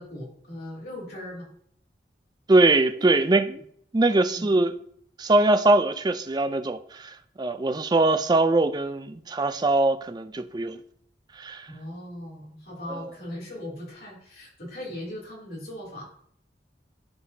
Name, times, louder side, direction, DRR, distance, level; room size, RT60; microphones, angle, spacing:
voice 1, 0.0-1.5 2.9-3.1 4.3-4.5 11.7-16.0, left 1 dB, 55° left, -4 dB, 2.9 m, -39 dB
voice 2, 2.5-3.6 3.9-4.7 5.2-10.8 11.4-11.7, right 2 dB, 25° right, 9 dB, 0.4 m, -22 dB
11.0 x 4.7 x 2.8 m, 0.64 s
head